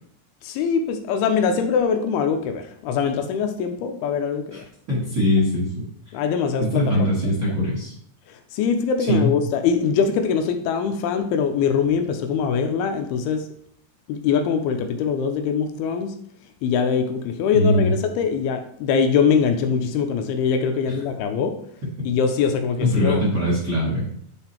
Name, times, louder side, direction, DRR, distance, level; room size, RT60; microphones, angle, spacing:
voice 1, 0.4-4.7 6.1-7.1 8.3-13.5 14.1-16.1 16.6-21.5 22.0-23.6, left 6 dB, 80° left, 6 dB, 2.5 m, -23 dB
voice 2, 4.9-5.7 6.7-7.9 9.1-9.3 17.5-17.9 20.9-21.0 22.8-24.0, left 1 dB, 30° right, -6 dB, 1.7 m, -21 dB
9.8 x 3.8 x 4.3 m, 0.66 s
omnidirectional pair, 4.6 m